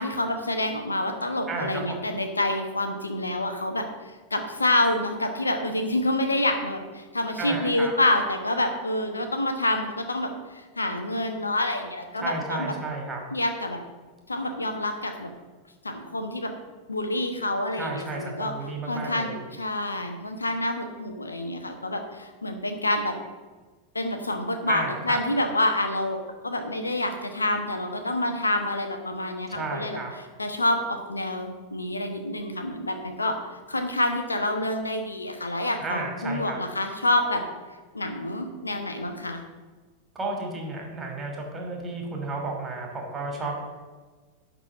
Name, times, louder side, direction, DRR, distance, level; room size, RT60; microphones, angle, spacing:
voice 1, 0.0-3.9 4.3-12.7 13.3-13.8 14.3-15.3 15.8-16.5 16.9-18.5 18.9-23.2 23.9-26.2 26.4-30.0 30.4-33.4 33.7-37.4 37.9-39.4, left 1 dB, 80° left, 6 dB, 1.1 m, -27 dB
voice 2, 1.5-2.1 7.4-7.9 12.2-13.2 17.8-19.4 24.7-25.2 29.5-30.1 35.8-36.6 40.1-43.5, right 3 dB, 15° right, 1 dB, 2.7 m, -32 dB
11.5 x 4.3 x 7.4 m, 1.4 s
figure-of-eight pair, 90°, 0 cm